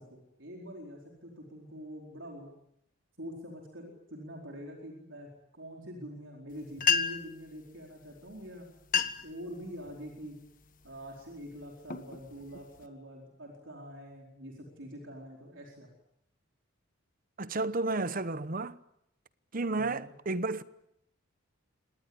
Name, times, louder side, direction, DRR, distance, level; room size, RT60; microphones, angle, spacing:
voice 1, 0.0-2.5 3.2-8.7 9.2-10.4 10.8-15.9 19.7-20.1, equal, 60° right, 4.5 m, -45 dB
sound 1, 6.5-6.6 6.8-7.4 8.3-8.4 8.8-9.4 9.9-10.2 10.8-11.1 11.6-12.9, left 7 dB, 40° left, 1.4 m, -31 dB
voice 2, 17.4-18.8 19.5-20.6, right 3 dB, 40° right, 0.9 m, -32 dB
25.5 x 19.5 x 9.7 m
head